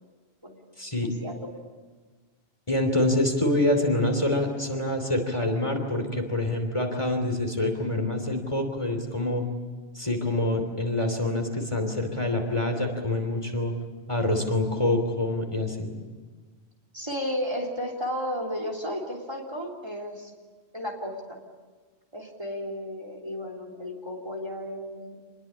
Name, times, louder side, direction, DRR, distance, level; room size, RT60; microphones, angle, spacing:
voice 1, 0.8-1.1 2.7-9.4 9.9-13.7 14.1-15.9, left 1 dB, 30° left, 4 dB, 3.1 m, -26 dB
voice 2, 16.9-20.3 20.7-21.4 22.1-25.3, equal, 25° right, 0 dB, 3.4 m, -33 dB
27.5 x 21.0 x 8.7 m, 1.4 s
omnidirectional pair, 1.1 m